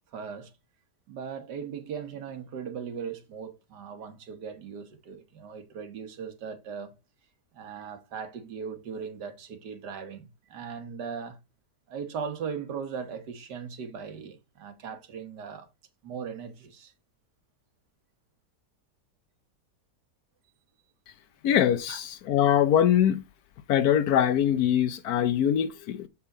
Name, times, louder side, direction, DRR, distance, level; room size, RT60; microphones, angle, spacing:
voice 1, 0.1-0.5 1.1-6.9 7.5-11.4 11.9-15.7 16.0-16.9 21.9-22.0, right 6 dB, 75° right, 1.8 m, -38 dB
voice 2, 21.4-23.2 23.7-26.1, left 10 dB, 70° left, 1.1 m, -23 dB
7.1 x 5.4 x 3.8 m
omnidirectional pair, 1.8 m